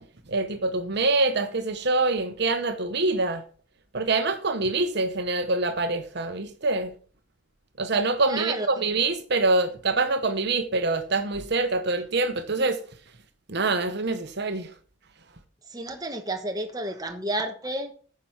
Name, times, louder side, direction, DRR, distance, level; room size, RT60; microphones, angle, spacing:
voice 1, 0.3-3.4 3.9-6.9 7.8-12.8 13.5-14.7, right 3 dB, 55° right, 1.1 m, -25 dB
voice 2, 8.2-8.8 15.7-17.9, right 1 dB, 20° right, 1.3 m, -31 dB
9.9 x 6.2 x 5.8 m
head